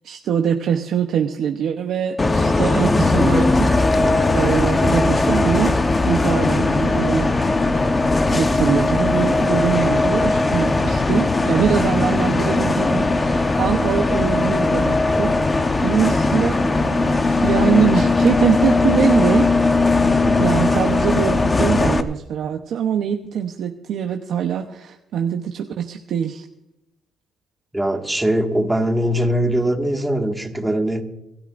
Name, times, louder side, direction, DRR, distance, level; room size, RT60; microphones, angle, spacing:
voice 1, 0.0-3.9 4.3-5.8 6.1-7.3 8.3-19.5 20.4-26.4, right 8 dB, 75° right, 4 dB, 0.9 m, -23 dB
Bus, 2.2-22.0, left 3 dB, 25° left, 1.0 m, -18 dB
voice 2, 20.2-20.6 27.7-31.0, right 1 dB, 10° right, 3 dB, 1.9 m, -21 dB
26.5 x 13.0 x 2.6 m, 0.91 s
cardioid pair, 90°, 0 cm